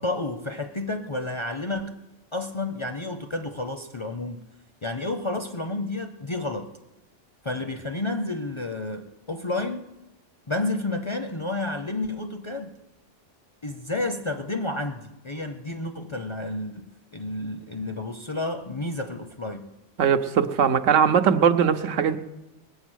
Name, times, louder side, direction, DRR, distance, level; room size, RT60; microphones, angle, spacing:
voice 1, 0.0-2.0 2.3-4.4 4.8-6.8 7.4-9.9 10.5-12.8 13.6-19.7, left 2 dB, 35° left, 0.5 m, -31 dB
voice 2, 20.0-22.2, right 7 dB, 85° right, 1.2 m, -20 dB
20.0 x 8.1 x 6.3 m
omnidirectional pair, 1.3 m